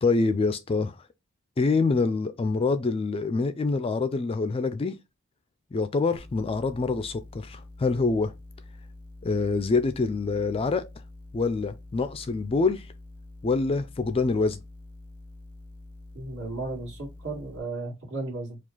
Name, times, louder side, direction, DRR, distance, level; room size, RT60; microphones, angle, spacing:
voice 1, 0.0-0.9 1.6-4.9 5.7-8.3 9.2-10.8 11.3-12.9 13.4-14.6, left 3 dB, 25° left, 0.3 m, -25 dB
sound 1, 6.2-17.6, left 2 dB, 80° right, 1.2 m, -46 dB
voice 2, 16.1-18.6, right 2 dB, 55° right, 2.1 m, -34 dB
4.8 x 2.4 x 3.8 m
head